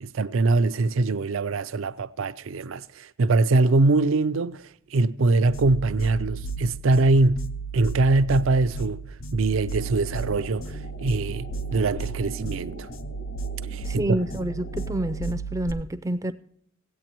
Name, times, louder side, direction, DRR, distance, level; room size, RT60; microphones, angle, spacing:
voice 1, 0.0-7.5 7.7-9.0 9.3-12.9 13.7-14.0, right 3 dB, 70° right, 0.4 m, -23 dB
sound 1, 5.5-15.7, right 4 dB, 75° left, 0.7 m, -34 dB
sound 2, 9.8-15.2, left 1 dB, 55° left, 1.5 m, -44 dB
voice 2, 13.8-16.3, right 1 dB, 15° right, 0.4 m, -28 dB
16.5 x 8.5 x 3.0 m
head